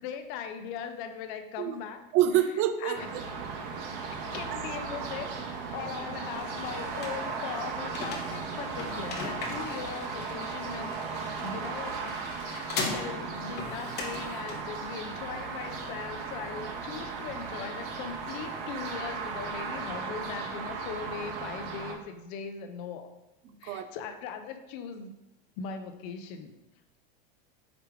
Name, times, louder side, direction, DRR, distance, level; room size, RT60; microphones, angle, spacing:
voice 1, 0.0-2.0 2.8-3.1 4.3-23.1 23.6-25.2 25.6-26.5, left 6 dB, 60° left, 0.6 m, -39 dB
voice 2, 2.1-3.2 4.5-4.6 23.6-23.9, right 11 dB, 45° right, 0.4 m, -27 dB
sound 1, 2.9-21.9, right 5 dB, 70° right, 0.8 m, -36 dB
sound 2, 6.3-19.9, left 4 dB, 35° left, 0.9 m, -42 dB
4.9 x 3.3 x 3.2 m
hypercardioid pair, 105°, 29 cm